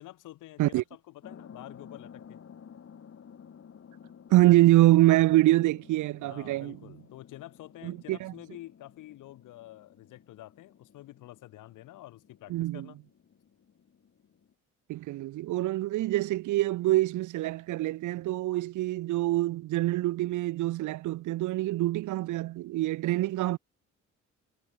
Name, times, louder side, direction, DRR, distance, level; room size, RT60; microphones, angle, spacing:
voice 1, 0.0-2.4 5.0-5.2 6.2-13.0, left 15 dB, 90° left, 5.5 m, -48 dB
sound 1, 1.2-14.5, left 7 dB, 50° left, 7.3 m, -53 dB
voice 2, 4.3-6.8 7.8-8.3 12.5-12.9 14.9-23.6, right 16 dB, 80° right, 0.7 m, -25 dB
cardioid pair, 90°, 30 cm